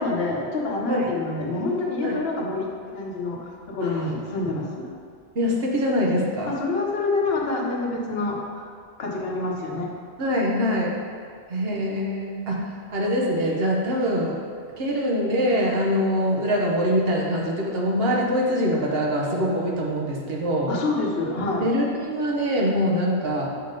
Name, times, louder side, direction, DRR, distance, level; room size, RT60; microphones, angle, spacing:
voice 1, 0.0-4.9 6.4-8.6 9.0-9.9 20.7-21.7, left 3 dB, 60° left, 0 dB, 1.1 m, -27 dB
voice 2, 5.3-6.5 10.2-11.0 11.5-14.4 14.7-20.7 21.6-23.6, equal, 60° right, -2 dB, 1.2 m, -24 dB
6.7 x 3.7 x 5.2 m, 2.1 s
omnidirectional pair, 1.2 m